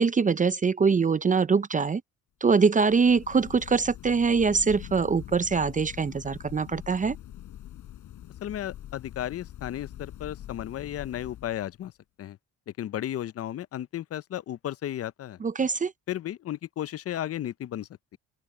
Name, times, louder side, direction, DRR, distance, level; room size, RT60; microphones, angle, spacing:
voice 1, 0.0-2.0 2.4-7.2 15.4-15.9, right 5 dB, 25° right, 0.6 m, -23 dB
sound 1, 2.7-11.9, left 12 dB, 75° left, 7.5 m, -44 dB
voice 2, 8.4-11.9 12.2-12.4 12.8-15.4 16.1-18.2, left 12 dB, 50° left, 0.6 m, -34 dB
open air
cardioid pair, 90°, 30 cm